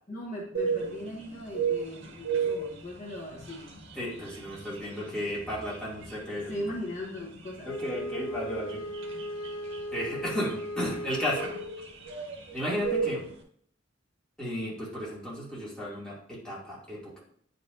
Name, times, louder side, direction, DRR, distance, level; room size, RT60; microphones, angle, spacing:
voice 1, 0.1-3.7 6.3-7.7, left 1 dB, 40° left, -2 dB, 0.9 m, -39 dB
sound 1, 0.5-13.4, right 6 dB, 80° right, 1.3 m, -36 dB
voice 2, 3.9-6.5 7.6-8.8 9.9-11.5 12.5-13.3 14.4-17.2, equal, 5° left, -7 dB, 2.4 m, -34 dB
Wind instrument woodwind instrument, 7.6-11.9, left 1 dB, 85° left, 0.5 m, -37 dB
9.3 x 5.2 x 2.6 m, 0.63 s
head